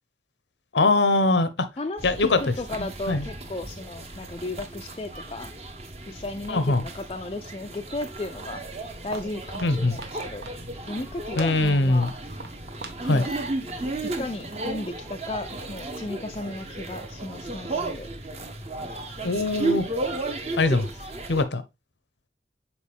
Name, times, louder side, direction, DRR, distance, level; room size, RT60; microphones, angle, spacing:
voice 1, 0.7-1.7 2.0-2.4 2.8-3.2 6.5-6.8 9.6-10.0 11.4-12.1 13.0-13.2 19.2-19.9 20.6-20.9 21.3-21.6, left 2 dB, 90° left, 0.9 m, -22 dB
voice 2, 1.8-5.5 6.1-8.6 9.0-10.5 10.9-12.1 13.1-13.3 14.0-18.1, left 2 dB, 30° left, 0.4 m, -35 dB
sound 1, 2.0-21.4, right 2 dB, 35° right, 1.0 m, -34 dB
Walk footsteps, 8.2-14.3, right 2 dB, 65° right, 1.2 m, -44 dB
7.2 x 4.6 x 3.4 m
head